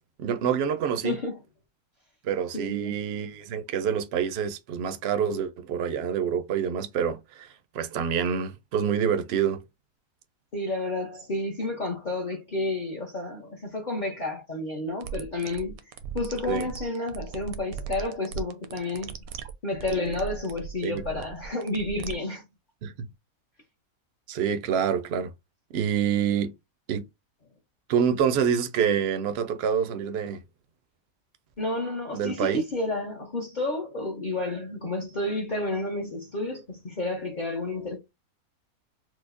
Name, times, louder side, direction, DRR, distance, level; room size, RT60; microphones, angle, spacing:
voice 1, 0.2-1.2 2.2-9.6 16.5-16.7 20.8-21.0 22.8-22.9 24.3-25.3 25.7-26.5 26.9-27.0 27.9-30.4 32.1-32.6, right 8 dB, 65° right, 0.6 m, -27 dB
voice 2, 1.0-1.4 2.5-2.9 10.5-19.2 19.6-22.4 31.6-38.0, left 2 dB, 45° left, 0.7 m, -31 dB
sound 1, 15.0-22.1, right 8 dB, 80° right, 1.0 m, -38 dB
4.7 x 2.1 x 2.5 m
omnidirectional pair, 1.5 m